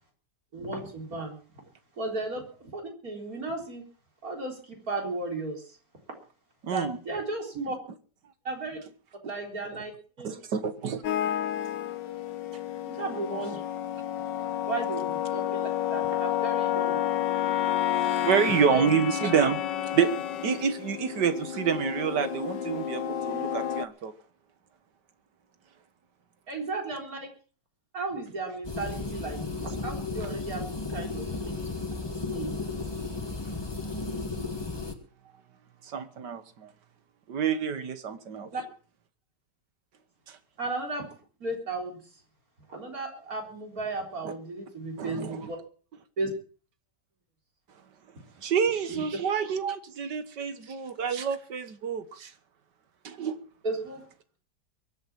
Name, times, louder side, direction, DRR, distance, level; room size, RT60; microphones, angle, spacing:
voice 1, 0.5-1.4 2.0-3.8 4.2-5.8 6.1-6.2 6.7-7.8 8.4-8.8 9.2-9.9 10.2-10.3 12.9-13.6 14.7-17.0 18.5-18.8 26.5-27.2 27.9-31.6 32.3-32.5 38.5-38.6 40.6-41.1 41.4-42.0 42.7-45.6 46.2-46.3 48.9-49.0 53.6-54.0, right 2 dB, 55° right, 2 dB, 4.5 m, -34 dB
voice 2, 6.6-7.0 9.7-9.8 10.2-11.0 17.9-20.2 20.4-24.1 35.8-36.7 37.3-38.5 40.3-40.4 44.2-44.3 45.0-45.5 48.4-52.3 53.0-53.4, right 7 dB, 75° right, 11 dB, 2.0 m, -28 dB
sound 1, 11.0-23.9, left 11 dB, 85° left, 1.5 m, -30 dB
sound 2, 28.6-34.9, left 3 dB, 15° left, 1.6 m, -34 dB
22.5 x 8.4 x 6.0 m, 0.40 s
omnidirectional pair, 1.9 m